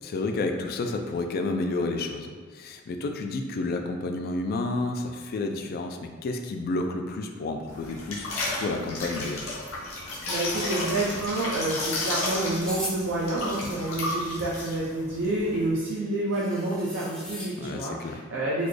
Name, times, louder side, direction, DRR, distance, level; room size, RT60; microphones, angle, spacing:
voice 1, 0.0-9.4 17.6-18.2, left 2 dB, 45° left, 5 dB, 0.3 m, -30 dB
sound 1, 7.7-15.7, left 2 dB, 70° left, 0.8 m, -33 dB
voice 2, 10.3-18.7, right 2 dB, 65° right, -6 dB, 0.5 m, -28 dB
sound 2, 12.6-13.0 15.5-15.6 15.9-16.0 16.3-17.5, equal, 5° left, 0.6 m, -37 dB
4.0 x 2.3 x 3.2 m, 1.5 s
head